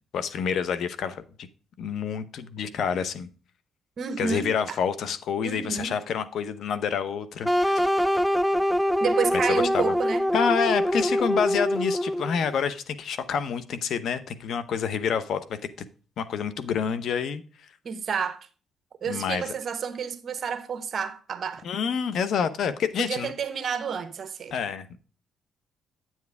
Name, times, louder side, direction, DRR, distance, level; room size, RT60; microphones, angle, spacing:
voice 1, 0.1-1.5 1.8-3.3 4.2-7.8 9.3-9.9 10.3-15.6 16.2-17.4 19.1-19.5 21.6-23.3 24.5-25.0, left 7 dB, 70° left, 0.9 m, -28 dB
voice 2, 4.0-4.5 5.4-5.9 9.0-10.3 17.8-18.5 19.0-21.6 23.0-24.5, right 6 dB, 50° right, 1.2 m, -30 dB
sound 1, 7.4-12.4, equal, ahead, 0.4 m, -24 dB
9.2 x 7.4 x 3.5 m
cardioid pair, 90°, 0 cm